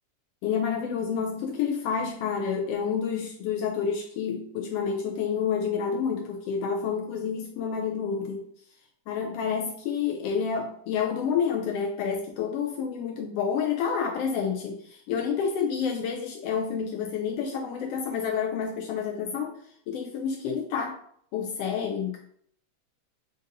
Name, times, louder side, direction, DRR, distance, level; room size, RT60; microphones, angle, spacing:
voice 1, 0.4-8.4 9.1-19.5 19.9-20.9 21.3-22.2, left 6 dB, 90° left, 1 dB, 1.4 m, -29 dB
5.1 x 2.6 x 3.8 m, 0.65 s
omnidirectional pair, 3.3 m